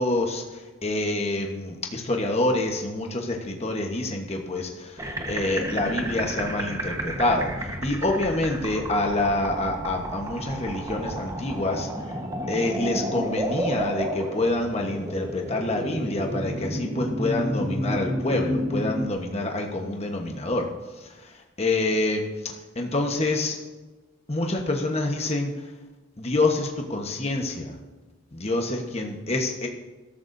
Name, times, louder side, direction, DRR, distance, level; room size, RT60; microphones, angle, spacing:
voice 1, 0.0-11.9 12.5-20.7 21.0-23.6 24.3-25.7 26.2-27.8 28.3-29.7, left 2 dB, 30° left, 2 dB, 1.1 m, -27 dB
sound 1, 5.0-19.1, equal, 15° right, 1.2 m, -31 dB
21.0 x 13.5 x 2.7 m, 1.2 s
head